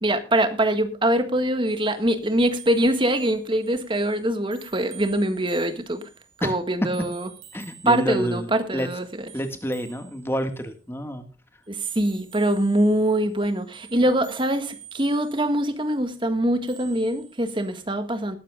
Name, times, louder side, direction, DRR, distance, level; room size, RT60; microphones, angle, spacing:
voice 1, 0.0-6.1 6.4-7.3 7.8-9.3 11.7-18.4, right 1 dB, 25° right, 1.6 m, -23 dB
sound 1, 1.7-6.5 6.9-8.5 8.8-10.7 11.6-16.1 16.7-17.8, right 9 dB, 80° right, 6.3 m, -49 dB
voice 2, 7.5-8.9 9.3-11.3, equal, 15° left, 1.7 m, -28 dB
20.5 x 12.0 x 2.4 m
head